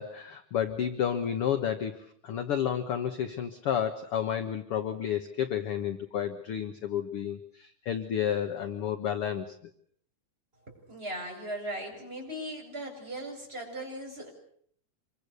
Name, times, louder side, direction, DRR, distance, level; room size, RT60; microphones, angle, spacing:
voice 1, 0.0-9.6, left 9 dB, 55° left, 8 dB, 1.8 m, -31 dB
voice 2, 10.7-14.3, right 1 dB, 15° right, 0 dB, 7.2 m, -38 dB
26.5 x 24.0 x 6.8 m, 0.64 s
omnidirectional pair, 3.6 m